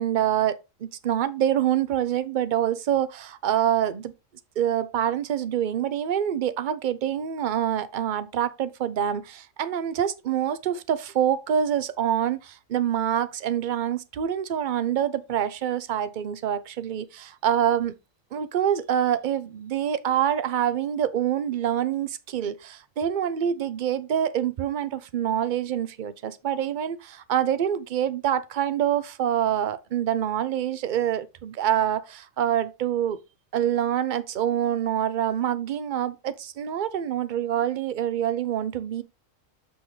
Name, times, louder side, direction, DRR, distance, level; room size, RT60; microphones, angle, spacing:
voice 1, 0.0-4.1 4.6-17.9 18.3-33.2 33.5-39.0, right 10 dB, 50° right, 0.6 m, -26 dB
7.1 x 6.2 x 3.2 m
omnidirectional pair, 1.4 m